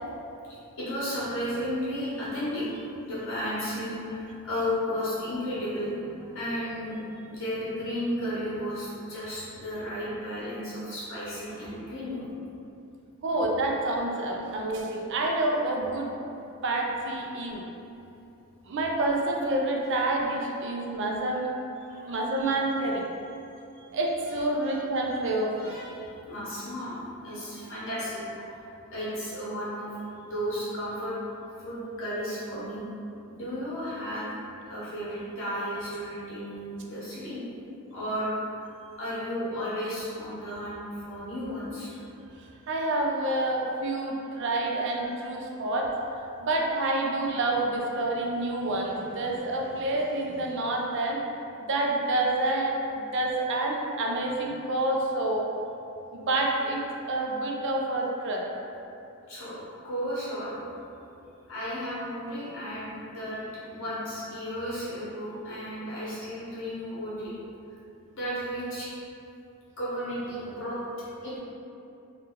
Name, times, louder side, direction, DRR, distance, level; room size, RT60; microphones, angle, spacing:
voice 1, 0.8-12.3 21.8-22.2 24.3-24.8 25.6-28.6 28.9-29.9 30.2-31.1 31.6-32.8 33.3-34.3 34.7-37.4 37.9-38.3 39.0-42.0 59.3-59.6 59.8-60.6 61.5-63.4 63.7-67.3 68.1-68.9 69.8-70.8 71.2-71.4, equal, 60° left, -9 dB, 1.1 m, -34 dB
voice 2, 13.2-16.1 16.6-17.7 18.7-21.5 22.1-23.0 23.9-25.7 42.7-51.2 51.7-55.5 56.1-56.8 57.1-58.4, right 2 dB, 55° right, 0 dB, 0.4 m, -28 dB
2.8 x 2.3 x 3.6 m, 2.7 s
head